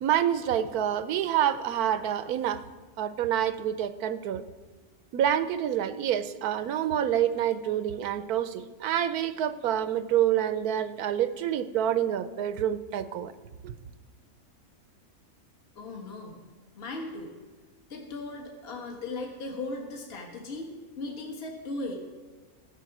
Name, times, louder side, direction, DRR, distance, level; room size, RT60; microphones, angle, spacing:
voice 1, 0.0-2.6 3.0-4.4 5.1-13.3 13.6-13.7, right 10 dB, 85° right, 12 dB, 1.2 m, -27 dB
voice 2, 15.7-16.4 16.7-17.4 17.9-22.0, left 2 dB, 45° left, 0 dB, 1.7 m, -37 dB
15.0 x 7.7 x 6.0 m, 1.4 s
omnidirectional pair, 1.6 m